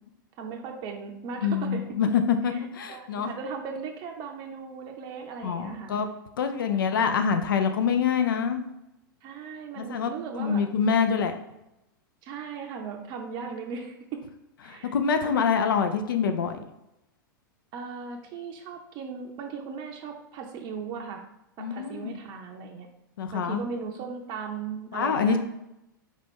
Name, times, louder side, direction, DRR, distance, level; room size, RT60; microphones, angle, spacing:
voice 1, 0.4-2.0 2.5-5.9 6.7-7.0 9.2-10.6 12.2-14.2 14.6-14.9 15.2-15.3 17.7-21.2 21.6-22.9 23.3-25.4, right 5 dB, 40° right, 2 dB, 0.5 m, -37 dB
voice 2, 1.4-3.3 5.4-6.1 6.4-8.6 9.8-10.1 10.4-11.4 14.6-16.6 21.6-22.1 23.2-23.6 24.9-25.4, left 6 dB, 75° left, 7 dB, 0.4 m, -25 dB
4.3 x 2.3 x 4.3 m, 0.89 s
hypercardioid pair, 100°, 11 cm